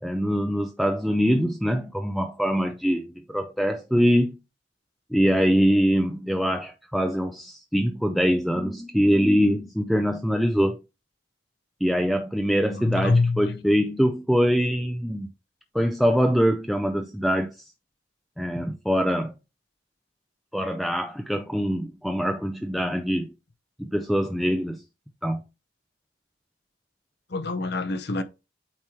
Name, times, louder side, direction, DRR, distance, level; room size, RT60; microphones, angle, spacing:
voice 1, 0.0-4.4 5.1-10.8 11.8-15.3 15.7-17.7 18.4-19.3 20.5-23.3 23.8-24.8 25.2-25.4, equal, ahead, 0.4 m, -23 dB
voice 2, 12.7-13.5 27.3-28.2, left 3 dB, 60° left, 0.8 m, -25 dB
8.6 x 3.1 x 4.4 m
head